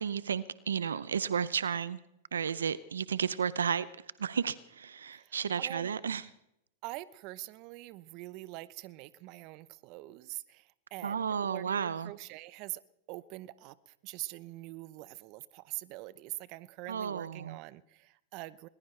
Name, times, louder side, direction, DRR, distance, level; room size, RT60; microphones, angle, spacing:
voice 1, 0.0-2.0 2.3-3.9 4.2-6.2 11.0-12.1 16.9-17.6, right 7 dB, 85° right, 18 dB, 0.6 m, -32 dB
voice 2, 5.1-5.9 6.8-12.8 13.1-18.7, right 19 dB, 50° right, 18 dB, 0.8 m, -44 dB
20.5 x 20.5 x 3.3 m, 0.83 s
hypercardioid pair, 105°, 0 cm